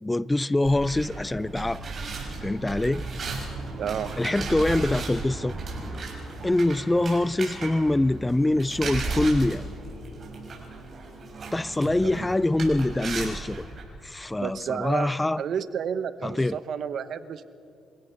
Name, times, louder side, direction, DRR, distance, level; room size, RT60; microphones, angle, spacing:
voice 1, 0.0-1.9 2.4-3.0 4.2-5.5 6.4-9.7 11.5-13.7 14.0-15.4 16.2-16.6, left 1 dB, 15° left, 0.4 m, -24 dB
sound 1, 0.6-13.8, right 3 dB, 50° right, 6.1 m, -35 dB
voice 2, 3.8-4.1 12.0-12.3 14.4-15.1 15.4-17.4, right 8 dB, 65° right, 0.9 m, -31 dB
27.5 x 16.5 x 5.8 m
cardioid pair, 90°, 0 cm